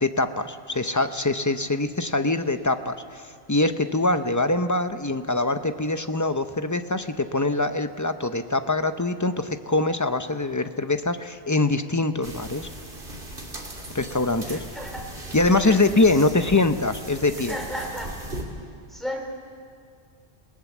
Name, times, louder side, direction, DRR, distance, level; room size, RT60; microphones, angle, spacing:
voice 1, 0.0-3.2 3.5-12.7 13.9-14.6 15.3-17.5, left 2 dB, 20° left, 9 dB, 0.6 m, -23 dB
sound 1, 12.2-18.4, right 1 dB, 45° right, 2.9 m, -38 dB
voice 2, 14.4-15.1 15.6-15.8 16.1-16.2 17.3-18.2 18.9-19.2, equal, ahead, 1 dB, 3.7 m, -34 dB
27.5 x 18.5 x 7.3 m, 2.2 s
omnidirectional pair, 1.3 m